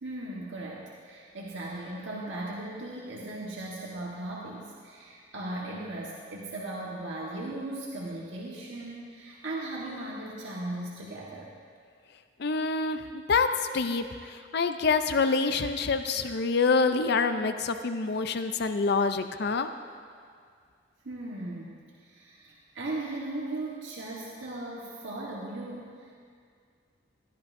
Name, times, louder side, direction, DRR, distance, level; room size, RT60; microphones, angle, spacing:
voice 1, 0.0-11.5 21.0-26.1, right 2 dB, 80° right, -4 dB, 1.4 m, -38 dB
voice 2, 12.4-13.5 13.7-19.7, left 4 dB, 60° left, 9 dB, 0.5 m, -26 dB
20.0 x 13.0 x 2.6 m, 2.2 s
head